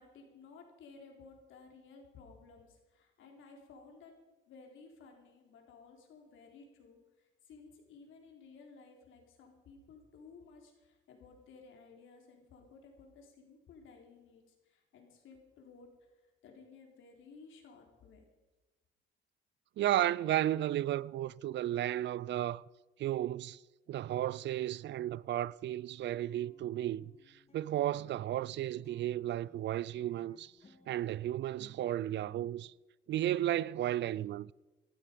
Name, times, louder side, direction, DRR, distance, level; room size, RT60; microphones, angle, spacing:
voice 1, 0.0-4.1 4.5-16.1 16.4-18.2 30.6-30.7, left 4 dB, 80° left, 3.7 m, -56 dB
voice 2, 19.8-22.6 23.0-23.6 23.9-30.5 30.9-32.7 33.1-34.5, right 13 dB, 65° right, 0.4 m, -33 dB
sound 1, 25.7-32.7, left 3 dB, 30° left, 2.6 m, -64 dB
19.0 x 12.5 x 5.1 m
cardioid pair, 90°, 20 cm